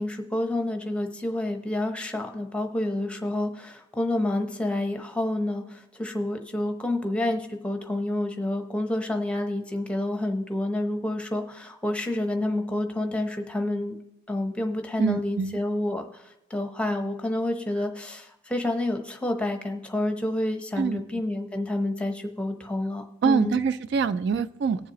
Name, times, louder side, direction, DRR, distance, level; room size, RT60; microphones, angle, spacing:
voice 1, 0.0-14.0 14.3-23.6, left 1 dB, 5° left, 5 dB, 0.8 m, -29 dB
voice 2, 15.0-15.6 20.8-21.3 23.2-24.9, right 5 dB, 60° right, 14 dB, 0.3 m, -25 dB
19.5 x 7.4 x 3.0 m, 0.94 s
head